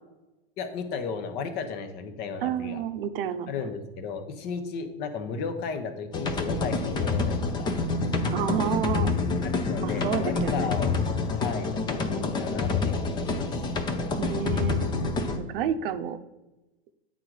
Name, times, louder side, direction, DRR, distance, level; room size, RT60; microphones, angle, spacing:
voice 1, 0.6-2.8 3.5-7.8 9.4-10.9 11.3-13.5, left 5 dB, 30° left, 8 dB, 0.9 m, -34 dB
voice 2, 2.4-3.5 8.3-9.1 9.8-10.8 14.2-14.9 15.3-16.2, right 8 dB, 60° right, 11 dB, 0.7 m, -30 dB
sound 1, 6.1-15.4, left 3 dB, 15° left, 0.6 m, -27 dB
8.6 x 3.9 x 4.7 m, 1.1 s
supercardioid pair, 150°, 32 cm